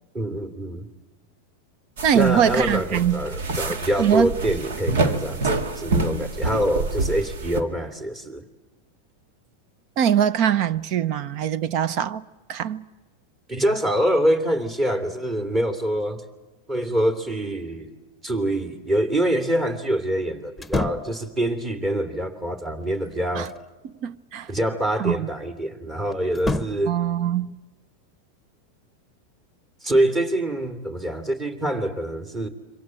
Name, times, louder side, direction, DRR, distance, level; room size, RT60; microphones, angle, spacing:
voice 1, 0.1-0.9 2.1-8.4 13.5-16.2 16.7-17.9 18.2-23.5 24.5-27.0 29.8-32.5, right 1 dB, 25° right, 2.9 m, -25 dB
voice 2, 2.0-3.2 4.0-4.3 10.0-12.2 12.5-12.8 23.3-23.5 24.0-24.5 25.0-25.3 26.9-27.5, right 9 dB, 50° right, 0.8 m, -22 dB
sound 1, 2.0-7.6, right 3 dB, 75° right, 2.0 m, -27 dB
sound 2, 20.6-21.2 22.8-23.7 26.3-26.9, left 2 dB, 5° left, 1.2 m, -29 dB
27.0 x 24.5 x 7.6 m
hypercardioid pair, 105°, 0 cm